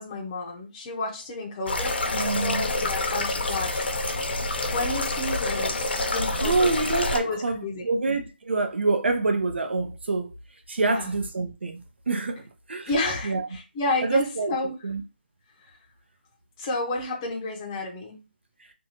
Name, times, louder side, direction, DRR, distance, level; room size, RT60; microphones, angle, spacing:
voice 1, 0.0-3.8 4.6-5.8 6.1-6.7 7.2-7.8 10.8-11.1 12.8-14.8 15.6-15.8 16.6-18.2, left 2 dB, 20° left, 0.5 m, -31 dB
sound 1, 1.7-7.2, left 2 dB, 70° left, 0.6 m, -27 dB
voice 2, 2.1-2.6 6.4-10.3 10.7-12.4 12.7-12.9 13.2-13.5 14.0-14.5 14.8-15.0, right 3 dB, 80° right, 0.7 m, -26 dB
2.6 x 2.3 x 2.8 m
hypercardioid pair, 165°, 6 cm